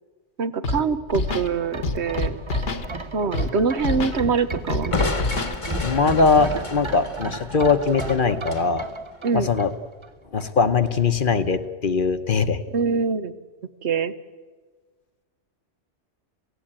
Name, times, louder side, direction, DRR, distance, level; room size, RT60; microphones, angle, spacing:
voice 1, 0.4-2.4 3.1-4.9 9.2-9.5 12.7-13.3 13.8-14.1, right 5 dB, 70° right, 12 dB, 1.2 m, -24 dB
Scratching (performance technique), 0.6-0.8 1.1-1.5 1.8-2.9 3.3-3.5 3.8-4.2 4.7-5.6, left 3 dB, 75° left, 1.8 m, -26 dB
sound 1, 1.2-10.1 10.4-10.5, right 3 dB, 25° right, 0.9 m, -35 dB
Crushing, 4.9-8.7, left 3 dB, 30° left, 1.2 m, -30 dB
voice 2, 5.8-8.8 9.3-9.7 10.3-12.6, left 4 dB, 50° left, 10 dB, 1.1 m, -21 dB
28.0 x 16.5 x 8.9 m, 1.5 s
omnidirectional pair, 1.2 m